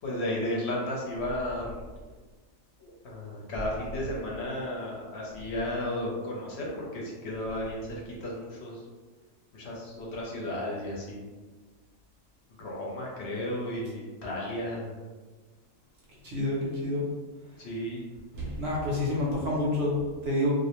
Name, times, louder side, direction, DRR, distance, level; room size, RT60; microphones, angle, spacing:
voice 1, 0.0-1.8 2.8-8.8 9.5-11.2 12.6-14.9 17.6-18.0, left 1 dB, 60° left, -3 dB, 0.8 m, -34 dB
voice 2, 16.2-17.1 18.3-20.5, left 1 dB, 60° right, -5 dB, 0.8 m, -28 dB
2.4 x 2.0 x 2.9 m, 1.3 s
omnidirectional pair, 1.4 m